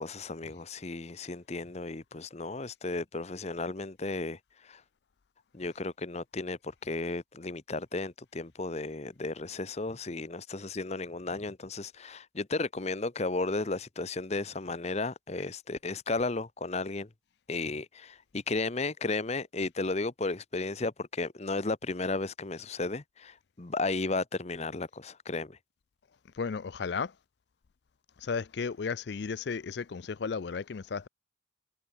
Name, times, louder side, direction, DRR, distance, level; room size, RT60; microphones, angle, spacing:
voice 1, 0.0-4.4 4.6-4.8 5.5-17.1 17.5-25.6, left 3 dB, 35° left, 0.8 m, -34 dB
voice 2, 26.4-27.1 28.2-31.1, left 5 dB, 55° left, 0.4 m, -34 dB
head